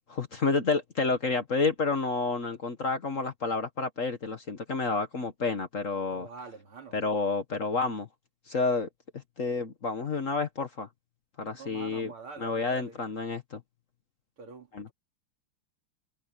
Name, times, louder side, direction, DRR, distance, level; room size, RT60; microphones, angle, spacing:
voice 1, 0.1-6.3 6.9-8.1 8.5-8.9 9.4-10.9 11.4-12.1 12.4-13.6 14.7-14.9, left 4 dB, 40° left, 1.5 m, -29 dB
voice 2, 6.1-7.0 11.5-13.0 14.4-14.9, right 5 dB, 80° right, 4.2 m, -45 dB
omnidirectional pair, 2.3 m